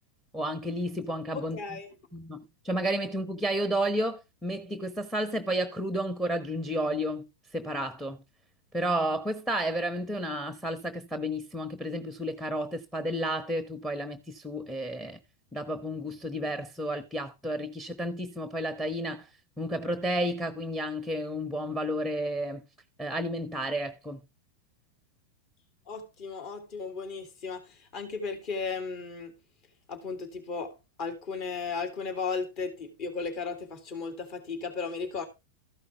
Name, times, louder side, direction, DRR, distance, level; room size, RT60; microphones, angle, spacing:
voice 1, 0.3-1.6 2.1-7.3 7.5-8.2 8.7-15.2 15.5-19.3 19.6-22.6 23.0-24.2, right 1 dB, 5° left, 1.0 m, -31 dB
voice 2, 1.3-1.9 25.9-29.3 29.9-35.3, left 4 dB, 40° left, 2.5 m, -35 dB
14.0 x 5.7 x 4.5 m
figure-of-eight pair, 90°, 0 cm